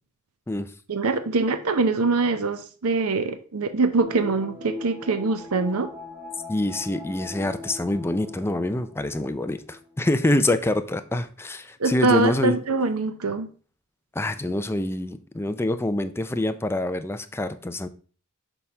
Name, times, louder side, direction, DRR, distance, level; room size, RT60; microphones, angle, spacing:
voice 1, 0.9-5.9 11.8-13.5, right 3 dB, 80° right, 0.7 m, -23 dB
sound 1, 4.0-9.9 10.2-10.3, left 3 dB, 10° right, 1.7 m, -40 dB
voice 2, 6.5-12.5 14.1-17.9, left 1 dB, 10° left, 0.5 m, -26 dB
6.9 x 3.6 x 5.4 m
head